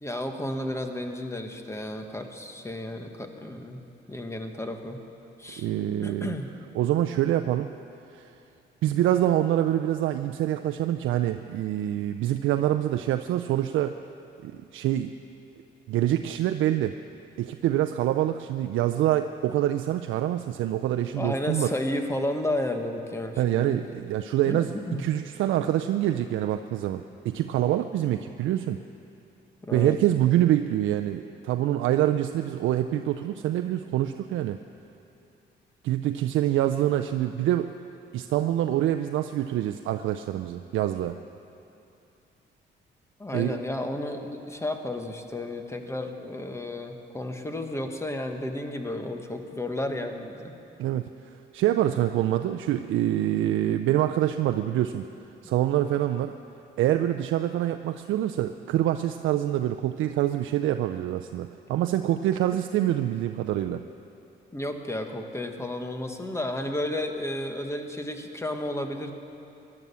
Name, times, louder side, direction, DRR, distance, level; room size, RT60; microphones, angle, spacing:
voice 1, 0.0-3.8 4.1-5.0 5.4-5.7 6.0-6.5 21.2-23.8 24.5-25.0 29.6-30.0 43.2-50.5 64.5-69.1, left 1 dB, 15° left, 5 dB, 1.4 m, -32 dB
voice 2, 5.6-6.3 6.7-7.7 8.1-8.3 8.8-14.0 14.4-15.1 15.9-17.0 17.4-21.7 23.4-24.7 25.0-28.8 29.7-34.6 35.8-37.7 38.1-41.2 43.3-43.6 50.8-55.0 55.4-56.3 56.8-63.8, right 12 dB, 80° right, 7 dB, 0.5 m, -25 dB
17.0 x 11.0 x 7.0 m, 2.7 s
cardioid pair, 90°, 20 cm